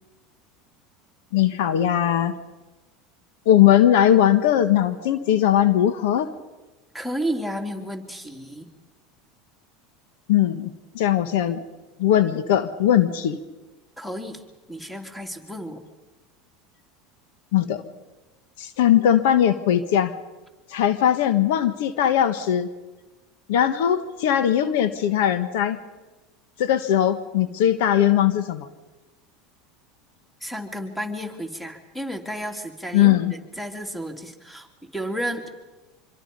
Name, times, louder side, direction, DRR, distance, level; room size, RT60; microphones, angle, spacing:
voice 1, 1.3-2.3 3.4-6.3 10.3-11.6 12.0-13.4 17.5-17.8 18.6-20.1 20.7-22.7 23.5-25.8 26.6-28.7 32.9-33.3, left 10 dB, 75° left, 11 dB, 1.4 m, -19 dB
voice 2, 6.9-8.7 14.0-14.4 14.7-15.8 30.4-34.7 34.9-35.5, equal, 5° left, 5 dB, 3.2 m, -32 dB
25.5 x 25.0 x 5.5 m, 1.1 s
supercardioid pair, 105°, 0 cm